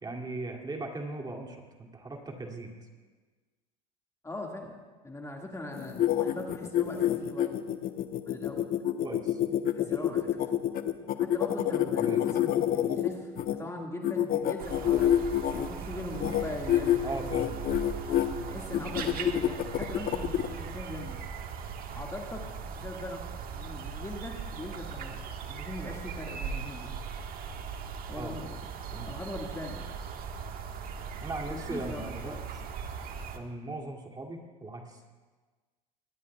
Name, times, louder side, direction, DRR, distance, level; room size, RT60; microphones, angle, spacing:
voice 1, 0.0-2.7 9.0-9.4 9.8-9.9 12.0-12.2 17.0-17.7 18.5-18.7 28.2-28.3 28.9-29.1 31.2-32.4 33.3-35.1, right 2 dB, 20° right, 1 dB, 2.7 m, -39 dB
voice 2, 4.2-7.6 8.2-8.7 9.4-10.5 11.2-15.2 15.5-17.3 18.4-21.2 21.9-27.0 28.1-28.6 29.1-29.9 31.5-32.4, left 1 dB, 15° left, 0 dB, 2.0 m, -41 dB
sound 1, 5.7-13.5 14.0-15.7 16.1-16.4 16.7-17.0 17.3-18.3 18.7-20.5, left 11 dB, 50° left, 1.1 m, -27 dB
sound 2, 14.6-33.4, right 6 dB, 45° right, 1.6 m, -39 dB
23.5 x 18.0 x 2.4 m, 1.3 s
hypercardioid pair, 80°, 20 cm